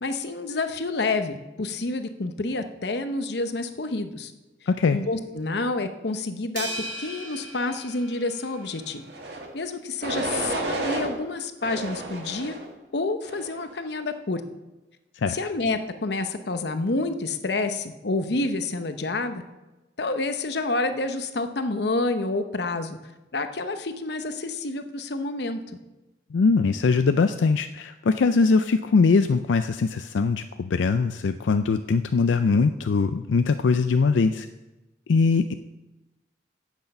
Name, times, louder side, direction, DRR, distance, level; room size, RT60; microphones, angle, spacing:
voice 1, 0.0-4.3 4.9-6.7 7.0-9.0 9.5-12.5 12.9-14.4 15.3-19.4 20.0-23.0 23.3-25.6, left 2 dB, 65° left, 8 dB, 0.8 m, -28 dB
voice 2, 4.7-5.0 15.2-15.4 26.3-34.5 35.1-35.5, left 4 dB, 90° left, 9 dB, 0.4 m, -21 dB
sound 1, 6.6-9.0, right 2 dB, 85° right, 2.1 m, -37 dB
sound 2, 9.1-9.5 10.0-11.1 11.6-12.7 13.2-13.7, right 2 dB, 65° right, 1.8 m, -31 dB
10.5 x 8.2 x 5.5 m, 1.1 s
head